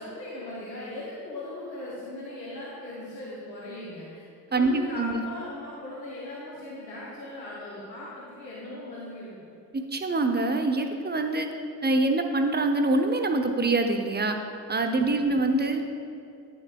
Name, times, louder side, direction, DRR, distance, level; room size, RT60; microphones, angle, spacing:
voice 1, 0.0-4.2 4.5-9.3 15.0-15.3, left 1 dB, 90° left, -7 dB, 1.0 m, -38 dB
voice 2, 4.5-5.2 9.7-11.5 11.8-14.4 14.7-15.9, right 2 dB, 20° right, 5 dB, 0.7 m, -25 dB
10.5 x 8.8 x 2.2 m, 2.6 s
figure-of-eight pair, 40°, 50 cm